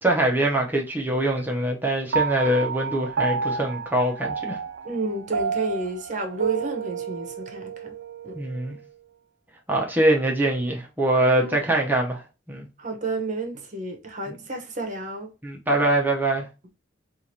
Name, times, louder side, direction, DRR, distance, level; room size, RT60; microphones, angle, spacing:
voice 1, 0.0-4.6 8.3-8.8 9.7-12.2 12.5-12.7 14.3-14.4 15.4-16.5, right 1 dB, 10° right, 0.7 m, -23 dB
Piano, 2.1-8.8, right 5 dB, 65° right, 0.5 m, -30 dB
voice 2, 4.8-7.9 8.2-8.4 11.3-11.6 12.8-15.3, right 3 dB, 40° right, 0.8 m, -30 dB
4.7 x 2.5 x 2.8 m
head